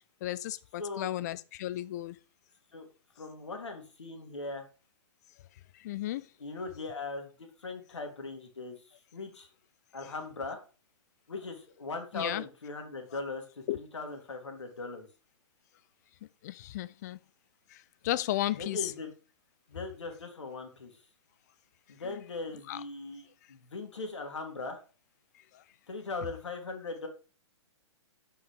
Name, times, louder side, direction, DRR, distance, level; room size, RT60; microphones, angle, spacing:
voice 1, 0.2-2.1 5.8-6.2 12.1-12.4 13.7-13.8 16.4-17.2 18.0-18.8 22.7-22.8, left 14 dB, 35° left, 0.4 m, -33 dB
voice 2, 0.8-1.2 2.7-2.9 3.2-4.7 6.4-8.8 9.1-9.5 9.9-10.6 11.3-13.4 13.7-15.1 18.6-19.1 19.7-20.9 21.9-24.8 25.9-27.1, left 3 dB, 65° left, 2.2 m, -39 dB
7.0 x 5.4 x 4.7 m
figure-of-eight pair, 120°, 16 cm